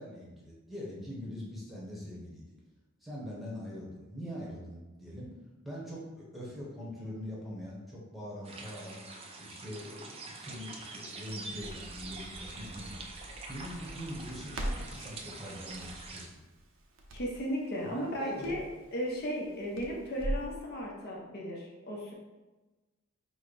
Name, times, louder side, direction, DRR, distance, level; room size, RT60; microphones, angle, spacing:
voice 1, 0.0-2.5 3.0-5.3 5.6-9.0 9.4-13.0 13.5-16.4 17.8-18.6, equal, ahead, -6 dB, 1.0 m, -43 dB
sound 1, 8.4-16.3, right 3 dB, 30° right, 0.4 m, -45 dB
Crackle, 11.3-20.5, right 1 dB, 70° right, 0.6 m, -42 dB
voice 2, 17.1-18.6 18.9-22.1, equal, 50° left, -2 dB, 0.7 m, -35 dB
5.0 x 2.1 x 3.9 m, 1.2 s
head